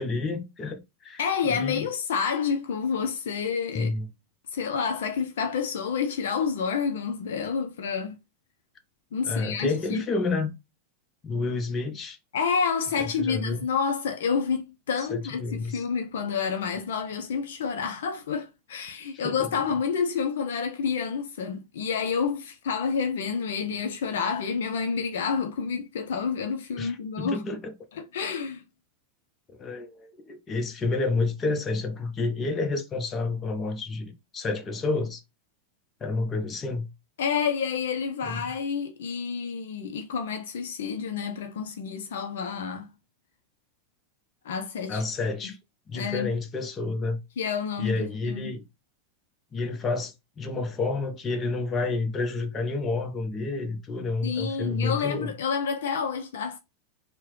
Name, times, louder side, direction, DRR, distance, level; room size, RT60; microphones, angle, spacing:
voice 1, 0.0-1.2 1.5-1.9 3.7-4.1 9.2-10.5 11.2-12.2 13.0-13.6 15.1-15.8 19.1-19.5 26.8-27.7 29.6-35.2 36.0-36.9 38.2-38.4 44.9-45.6 45.9-47.2 47.8-48.6 49.5-55.3, left 3 dB, 25° left, 0.8 m, -29 dB
voice 2, 1.2-3.9 4.5-8.2 9.1-10.0 12.3-27.4 27.9-28.6 37.2-42.9 44.4-45.0 45.9-46.3 47.4-48.5 54.2-56.6, left 6 dB, 70° left, 0.5 m, -29 dB
4.5 x 2.2 x 3.1 m
hypercardioid pair, 95°, 0 cm